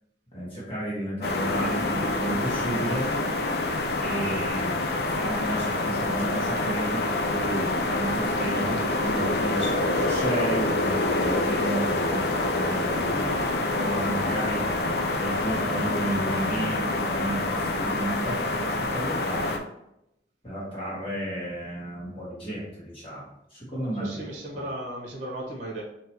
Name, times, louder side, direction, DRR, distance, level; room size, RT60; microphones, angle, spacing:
voice 1, 0.3-3.1 4.0-13.2 13.7-14.7 15.1-19.6 20.4-24.2 24.5-24.7, right 1 dB, 30° left, -7 dB, 1.6 m, -32 dB
sound 1, 1.2-19.6, left 2 dB, 60° left, 0.5 m, -26 dB
voice 2, 13.0-13.5 24.0-25.8, right 1 dB, 45° right, -2 dB, 1.0 m, -36 dB
4.6 x 3.0 x 3.0 m, 0.83 s
head